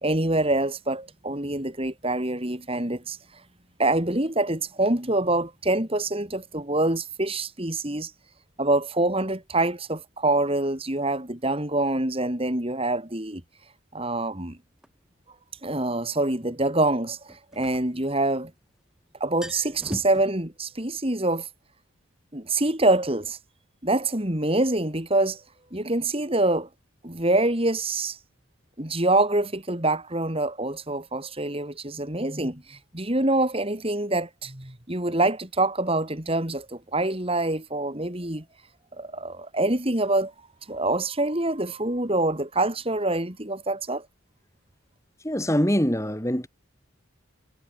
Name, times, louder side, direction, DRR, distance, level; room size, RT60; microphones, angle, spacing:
voice 1, 0.0-3.2 3.8-8.1 8.6-13.4 13.9-14.6 15.6-18.5 19.2-21.5 22.3-23.4 23.8-25.4 25.7-26.7 27.0-28.2 28.8-38.4 39.0-40.3 40.7-44.1, right 2 dB, 25° right, 3.2 m, -25 dB
sound 1, 14.8-14.9 17.3-18.6 18.9-19.0 19.2-20.2, equal, 5° right, 3.8 m, -38 dB
voice 2, 45.2-46.5, equal, 15° left, 3.5 m, -23 dB
head